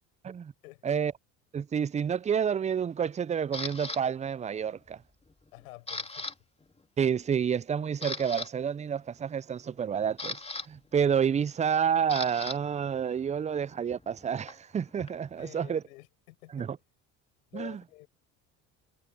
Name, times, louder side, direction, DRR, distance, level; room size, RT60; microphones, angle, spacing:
voice 1, 0.6-1.1 5.5-6.3 15.4-16.7 17.5-18.1, left 21 dB, 85° left, 5.6 m, -49 dB
voice 2, 1.5-5.0 7.0-10.4 10.7-15.8 16.5-16.8 17.5-17.8, right 7 dB, 20° right, 0.4 m, -29 dB
Camera, 3.5-4.0 4.6-4.9 5.3-6.3 6.6-6.8 7.4-7.5 7.9-8.5 9.7-12.6 12.9-15.4, left 2 dB, 15° left, 2.9 m, -39 dB
hypercardioid pair, 70°, 41 cm